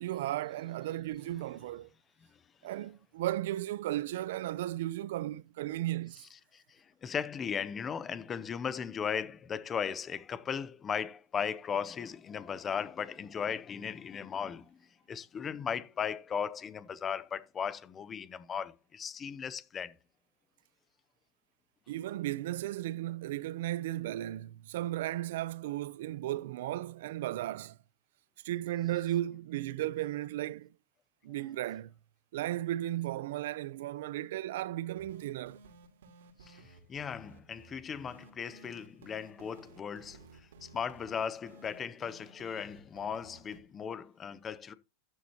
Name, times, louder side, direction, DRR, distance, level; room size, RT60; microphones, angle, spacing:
voice 1, 0.0-1.9 2.6-6.2 21.9-27.8 28.4-30.7 31.2-31.9 32.3-35.6, right 14 dB, 60° right, 0.6 m, -35 dB
voice 2, 6.5-19.9 36.4-40.3 40.6-44.7, left 7 dB, 15° left, 0.6 m, -37 dB
sound 1, 34.9-43.6, right 3 dB, 90° right, 3.7 m, -56 dB
12.5 x 11.0 x 2.9 m
supercardioid pair, 170°, 0 cm